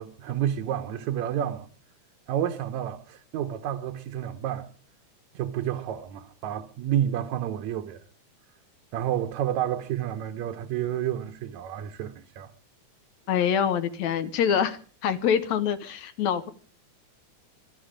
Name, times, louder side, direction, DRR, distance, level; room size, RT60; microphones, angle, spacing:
voice 1, 0.0-1.7 2.3-4.7 5.3-8.0 8.9-12.5, right 10 dB, 70° right, 2.1 m, -30 dB
voice 2, 13.3-16.5, left 8 dB, 70° left, 2.1 m, -25 dB
23.5 x 11.0 x 5.1 m
omnidirectional pair, 3.6 m